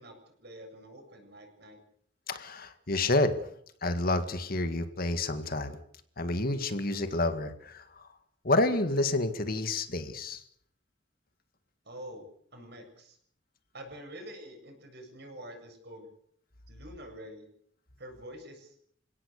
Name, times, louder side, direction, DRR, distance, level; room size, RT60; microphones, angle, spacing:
voice 1, 0.0-1.8 11.8-13.2 13.7-16.1 16.7-17.5 18.0-18.8, equal, 55° right, 4 dB, 7.4 m, -47 dB
voice 2, 2.3-3.3 3.8-5.8 6.2-7.8 8.4-10.4, left 2 dB, 50° left, 9 dB, 1.9 m, -29 dB
29.5 x 17.0 x 6.7 m, 0.64 s
head